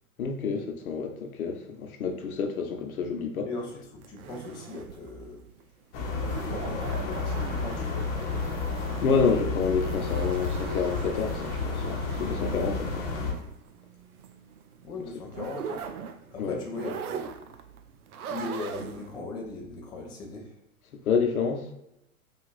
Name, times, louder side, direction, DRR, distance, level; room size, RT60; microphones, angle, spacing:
voice 1, 0.2-3.5 9.0-13.0 16.4-16.6 21.0-21.6, left 5 dB, 80° left, 0.8 m, -28 dB
voice 2, 3.4-5.4 6.2-8.6 14.8-15.8 16.3-17.4 18.3-20.6, left 3 dB, 10° left, 0.3 m, -39 dB
sound 1, 4.0-19.2, right 7 dB, 85° right, 0.5 m, -41 dB
sound 2, 5.9-13.3, left 4 dB, 40° left, 0.8 m, -31 dB
4.9 x 2.4 x 2.5 m
hypercardioid pair, 105°, 42 cm